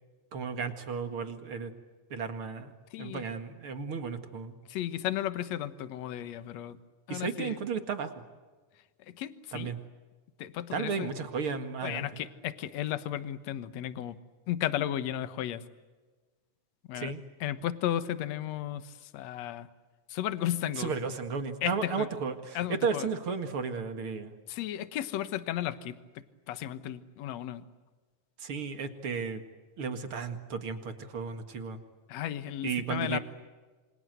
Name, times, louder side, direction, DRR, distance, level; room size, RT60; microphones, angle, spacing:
voice 1, 0.3-1.7 2.1-2.7 3.0-4.6 7.1-8.1 9.5-9.8 10.7-12.2 16.9-17.2 20.8-24.3 28.4-29.4 29.8-31.8 32.6-33.2, right 5 dB, 50° right, 8 dB, 2.6 m, -34 dB
voice 2, 2.9-3.2 4.7-6.8 7.1-7.6 9.1-9.7 10.4-11.1 11.8-14.2 14.5-15.6 16.9-17.1 17.4-19.7 20.1-20.9 21.6-22.1 22.5-23.1 24.5-27.6 32.1-33.2, left 12 dB, 65° left, 13 dB, 2.3 m, -34 dB
28.0 x 26.0 x 8.1 m, 1.3 s
omnidirectional pair, 3.5 m